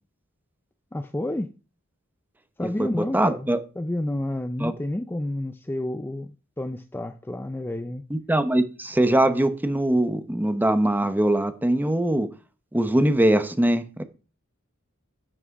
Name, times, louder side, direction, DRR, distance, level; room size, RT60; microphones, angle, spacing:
voice 1, 0.9-1.5 2.6-3.5 3.8-8.0, left 1 dB, 10° left, 0.4 m, -30 dB
voice 2, 2.6-3.6 4.6-4.7 8.1-12.3 12.7-14.0, right 1 dB, 10° right, 0.8 m, -22 dB
11.0 x 6.2 x 4.7 m
head